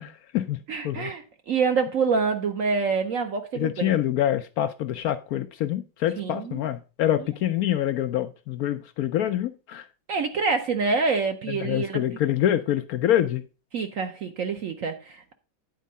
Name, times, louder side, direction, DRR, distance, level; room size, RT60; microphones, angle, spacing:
voice 1, 0.0-0.6 0.8-1.1 3.5-9.9 11.5-13.4, left 11 dB, 75° left, 0.8 m, -26 dB
voice 2, 0.7-3.9 6.2-6.6 10.1-12.0 13.7-15.3, right 4 dB, 60° right, 0.9 m, -26 dB
9.3 x 4.5 x 5.2 m
omnidirectional pair, 2.1 m